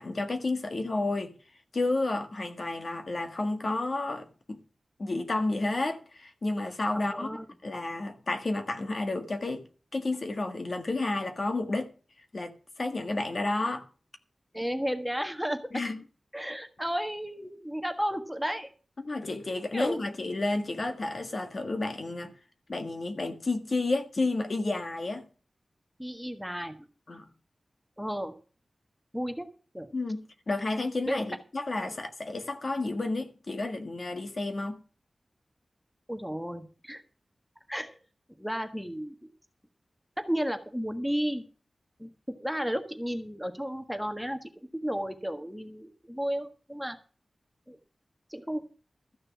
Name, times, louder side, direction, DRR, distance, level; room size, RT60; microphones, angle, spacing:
voice 1, 0.0-1.3 1.7-4.6 5.0-9.7 9.9-11.9 12.3-13.8 15.7-16.0 19.0-22.3 22.7-25.2 27.1-27.3 29.9-34.8, left 2 dB, 50° left, 1.7 m, -31 dB
voice 2, 6.9-7.4 14.5-15.6 16.3-18.7 19.7-20.0 26.0-26.8 28.0-28.3 29.1-29.5 29.7-29.9 31.1-31.2 31.8-32.0 36.1-37.0 37.7-38.0 38.4-39.3 40.2-41.4 42.0-47.0 47.7-47.8 48.3-48.6, equal, ahead, 1.5 m, -33 dB
14.0 x 6.6 x 7.4 m
wide cardioid pair, 105°, 0 cm